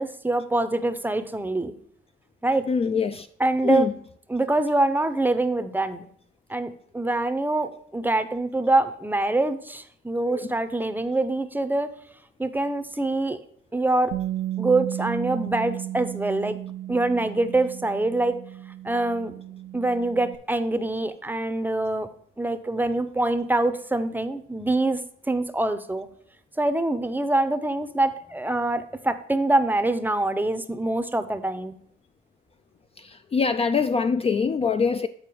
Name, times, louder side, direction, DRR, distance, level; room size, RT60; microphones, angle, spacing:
voice 1, 0.0-1.7 2.4-2.7 3.4-3.9 4.3-6.1 6.5-11.9 12.4-13.4 13.7-14.1 14.6-16.6 16.9-18.4 18.8-19.3 19.7-22.1 22.4-25.0 25.3-26.1 26.6-31.7, right 2 dB, 10° right, 0.6 m, -25 dB
voice 2, 2.7-3.3 3.6-3.9 10.3-10.5 33.0-35.1, left 5 dB, 30° left, 0.3 m, -24 dB
Bass guitar, 14.1-20.4, right 13 dB, 65° right, 0.4 m, -34 dB
8.6 x 4.3 x 4.6 m
cardioid pair, 90°, 20 cm